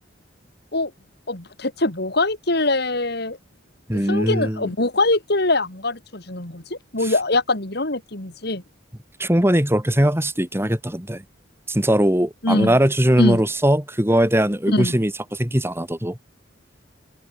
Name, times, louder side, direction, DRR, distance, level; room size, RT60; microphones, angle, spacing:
voice 1, 1.3-3.4 3.9-8.6 12.4-12.8 13.2-13.4 14.7-14.9, left 2 dB, 60° left, 3.5 m, -23 dB
voice 2, 3.9-4.7 7.0-7.1 9.2-11.2 11.7-16.2, right 1 dB, 15° right, 3.2 m, -20 dB
head